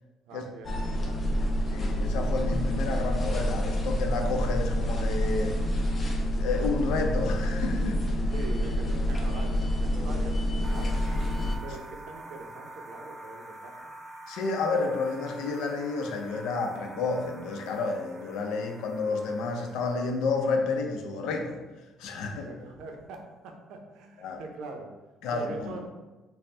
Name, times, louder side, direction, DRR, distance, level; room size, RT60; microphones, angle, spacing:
voice 1, 0.3-1.4 8.3-11.3 11.6-13.9 22.3-24.9 25.3-25.9, right 3 dB, 85° right, 3 dB, 0.5 m, -43 dB
sound 1, 0.6-11.6, equal, 25° left, 0.5 m, -27 dB
voice 2, 1.7-5.5 6.3-8.0 14.3-21.6 22.0-22.5 24.2-24.4 25.2-25.7, left 3 dB, 90° left, 3 dB, 0.5 m, -30 dB
sound 2, 10.6-20.4, right 1 dB, 30° right, 0.4 m, -46 dB
4.2 x 2.1 x 3.2 m, 1.1 s
cardioid pair, 145°, 0 cm